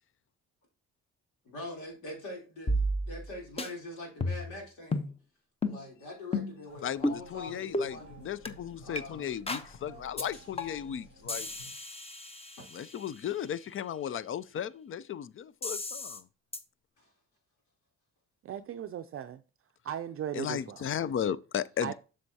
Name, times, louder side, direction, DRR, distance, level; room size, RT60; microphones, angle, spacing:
voice 1, 1.4-2.7 3.0-5.1 5.6-8.2 8.8-9.3 17.0-17.1, left 2 dB, 90° left, 3.4 m, -43 dB
sound 1, 2.7-3.3 3.6-3.7 4.2-4.6 4.9-5.1 5.6-5.8 6.3-6.6 7.0-7.2 7.7-7.9 8.5-8.6 9.0-9.1 9.5-9.7 10.2-10.3 10.6-10.9 11.3-13.1 15.6-16.2 16.5-16.6, left 1 dB, 20° left, 0.9 m, -33 dB
sound 2, 6.7-11.7, right 1 dB, 70° left, 4.4 m, -52 dB
voice 2, 6.8-11.5 12.7-16.3 20.3-21.9, left 9 dB, 45° left, 0.5 m, -35 dB
voice 3, 18.4-19.4 19.8-20.9 21.8-21.9, right 9 dB, 50° right, 0.5 m, -37 dB
7.6 x 6.4 x 2.8 m
cardioid pair, 90°, 30 cm